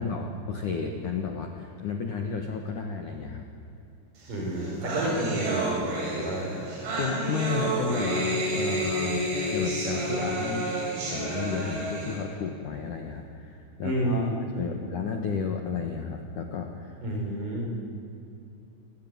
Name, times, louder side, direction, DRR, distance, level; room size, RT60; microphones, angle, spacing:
voice 1, 0.0-3.5 7.0-10.7 11.0-17.0, left 6 dB, 70° left, 4 dB, 1.9 m, -32 dB
voice 2, 4.3-6.5 13.8-14.8 17.0-17.7, right 1 dB, 40° right, 0 dB, 7.0 m, -30 dB
sound 1, 4.3-4.4 4.6-12.2, right 2 dB, 65° right, 8.6 m, -30 dB
29.0 x 20.0 x 9.5 m, 2.9 s
omnidirectional pair, 6.0 m